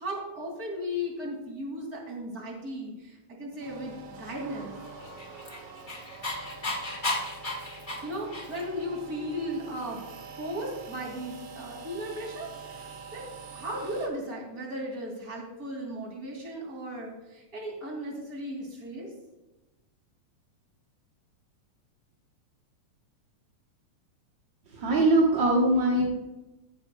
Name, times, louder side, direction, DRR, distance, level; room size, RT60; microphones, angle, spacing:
voice 1, 0.0-4.7 8.0-10.0 10.4-13.2 13.5-19.1, equal, 30° right, -1 dB, 3.0 m, -36 dB
sound 1, 3.6-14.1, right 4 dB, 80° right, 2.8 m, -45 dB
Dog, 5.0-8.8, left 2 dB, 45° left, 0.6 m, -34 dB
voice 2, 24.7-26.0, right 1 dB, 50° right, -3 dB, 1.7 m, -22 dB
14.5 x 9.7 x 2.3 m, 1.0 s
omnidirectional pair, 3.4 m